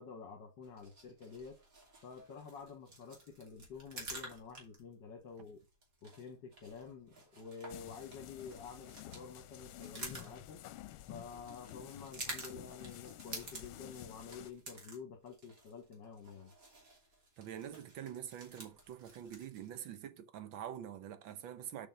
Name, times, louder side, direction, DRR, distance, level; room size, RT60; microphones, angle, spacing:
voice 1, 0.0-1.6 2.0-5.6 6.0-10.6 11.1-16.5, left 5 dB, 65° left, 2.0 m, -49 dB
sound 1, 0.6-19.8, right 2 dB, 40° right, 2.8 m, -51 dB
sound 2, 7.7-14.5, left 13 dB, 85° left, 1.5 m, -51 dB
voice 2, 17.4-21.9, right 10 dB, 70° right, 1.5 m, -45 dB
6.9 x 5.3 x 5.5 m
omnidirectional pair, 2.2 m